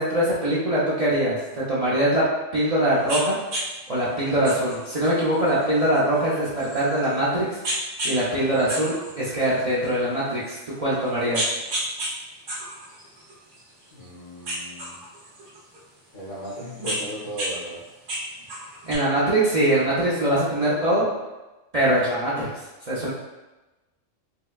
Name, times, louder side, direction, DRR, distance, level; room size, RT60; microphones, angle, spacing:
voice 1, 0.0-2.2 2.5-3.4 3.9-7.5 8.0-11.5 18.9-21.1 21.7-22.5 22.9-23.1, right 1 dB, 45° right, -8 dB, 0.5 m, -22 dB
sound 1, 3.1-3.2 3.5-3.7 4.4-7.1 7.6-8.2 8.5-9.9 10.4-10.5 11.1-12.1 12.5-14.1 14.4-15.8 16.5-17.5 17.8-19.0, right 1 dB, 75° right, 1.2 m, -31 dB
voice 2, 13.9-15.0 16.1-17.8, right 1 dB, 75° left, -6 dB, 1.5 m, -36 dB
4.6 x 2.2 x 2.3 m, 1.1 s
omnidirectional pair, 1.3 m